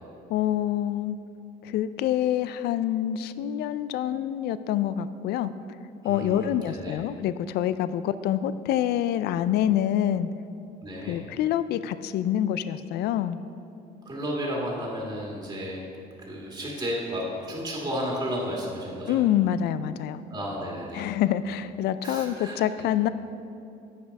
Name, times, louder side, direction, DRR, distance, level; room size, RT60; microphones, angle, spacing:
voice 1, 0.3-1.2 1.6-5.5 6.0-10.3 11.1-13.4 19.1-20.2 20.9-23.1, left 11 dB, 70° left, 14 dB, 0.4 m, -26 dB
voice 2, 6.0-7.0 10.8-11.2 14.0-15.9 16.2-19.2 20.3-21.1 22.0-22.9, equal, 25° right, -3 dB, 1.8 m, -33 dB
8.4 x 6.0 x 5.2 m, 2.7 s
cardioid pair, 110°, 17 cm